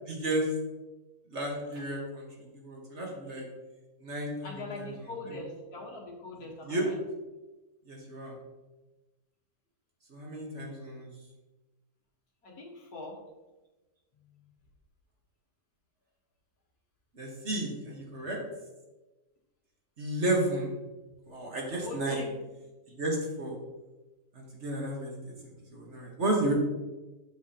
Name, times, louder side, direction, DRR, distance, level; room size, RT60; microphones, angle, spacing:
voice 1, 0.1-0.5 1.3-3.5 4.0-5.3 6.6-6.9 7.8-8.4 10.1-11.1 17.1-18.4 20.0-20.7 21.3-22.2 22.9-23.6 24.3-25.2 25.7-26.5, right 1 dB, 45° right, -1 dB, 1.7 m, -33 dB
voice 2, 4.4-7.0 12.4-13.2 21.8-22.4, left 2 dB, 75° left, -1 dB, 2.0 m, -42 dB
7.6 x 7.1 x 2.9 m, 1.1 s
omnidirectional pair, 1.6 m